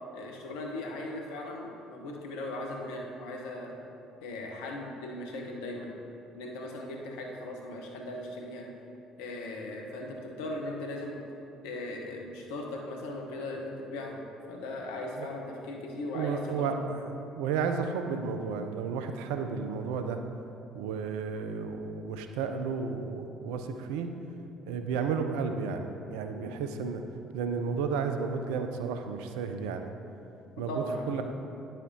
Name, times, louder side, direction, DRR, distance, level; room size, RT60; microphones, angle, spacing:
voice 1, 0.1-3.7 4.2-6.0 6.3-8.7 9.2-11.2 11.6-16.8 26.3-26.5 30.6-31.2, left 1 dB, 75° left, 1 dB, 1.0 m, -38 dB
voice 2, 16.1-17.1 17.4-20.2 20.7-24.1 24.7-27.0 27.3-29.9 30.6-31.2, right 5 dB, 75° right, 7 dB, 0.5 m, -32 dB
9.8 x 7.3 x 2.8 m, 2.7 s
hypercardioid pair, 55°, 0 cm